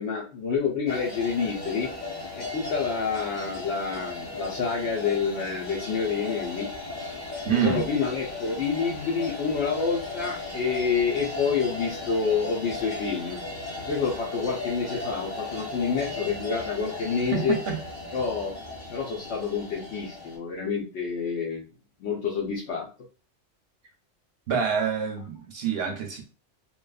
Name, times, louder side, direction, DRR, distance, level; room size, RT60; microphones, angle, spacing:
voice 1, 0.0-1.9 2.3-6.7 7.5-13.4 13.9-17.6 18.1-18.5 18.9-21.6 22.0-22.9, left 5 dB, 75° left, 0.9 m, -28 dB
sound 1, 0.9-20.4, left 2 dB, 40° left, 0.9 m, -36 dB
voice 2, 7.4-7.8 17.3-17.8 24.5-26.2, right 7 dB, 65° right, 0.7 m, -26 dB
3.0 x 2.2 x 2.3 m
omnidirectional pair, 1.2 m